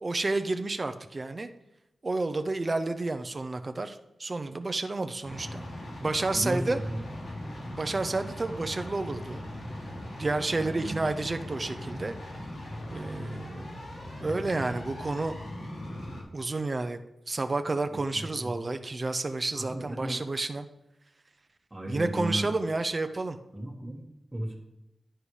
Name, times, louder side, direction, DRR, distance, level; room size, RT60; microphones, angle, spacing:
voice 1, 0.0-1.5 2.0-5.7 6.0-6.8 7.7-9.4 10.2-12.1 12.9-13.8 14.2-15.4 16.3-17.0 17.3-20.6 21.9-23.4, right 3 dB, 35° right, 7 dB, 0.6 m, -30 dB
sound 1, 5.2-16.2, left 1 dB, 75° left, 3.9 m, -39 dB
voice 2, 6.3-7.0 10.5-11.1 17.9-18.2 19.5-20.2 21.7-22.5 23.5-24.0 24.3-24.6, right 1 dB, 15° right, -2 dB, 1.6 m, -35 dB
10.0 x 10.0 x 3.3 m, 0.91 s
wide cardioid pair, 115°, 0 cm